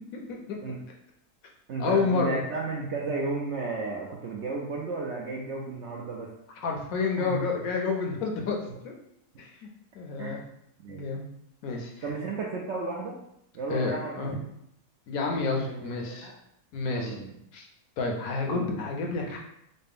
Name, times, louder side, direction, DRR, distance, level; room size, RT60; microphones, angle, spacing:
voice 1, 0.1-0.6 1.8-2.4 6.6-8.6 8.8-8.9 9.4-9.7 9.9-10.4 10.9-11.3 11.6-12.0 13.7-14.4 15.1-16.3 16.7-17.2 17.5-17.7 18.0-19.4, left 4 dB, 70° left, 1 dB, 1.0 m, -29 dB
voice 2, 1.7-6.3 7.2-7.5 10.2-10.4 10.8-11.1 12.0-13.2 13.5-14.2 15.6-16.3 16.9-17.4 18.5-18.8, right 3 dB, 70° right, -2 dB, 0.7 m, -33 dB
4.1 x 2.1 x 3.5 m, 0.76 s
omnidirectional pair, 1.6 m